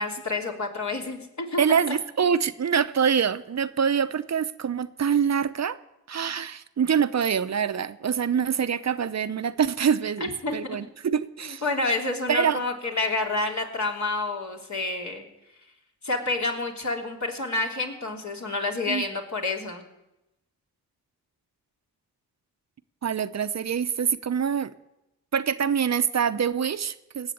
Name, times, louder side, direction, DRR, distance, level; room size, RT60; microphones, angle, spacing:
voice 1, 0.0-1.6 1.9-2.0 10.2-10.8 11.4-15.3 16.0-19.8, left 3 dB, 50° left, 1 dB, 3.2 m, -29 dB
voice 2, 1.6-5.8 6.1-11.6 12.3-12.6 18.9-19.0 23.0-24.7 25.3-27.3, right 7 dB, 45° right, 13 dB, 0.8 m, -25 dB
17.5 x 7.6 x 8.8 m, 0.92 s
cardioid pair, 50°, 37 cm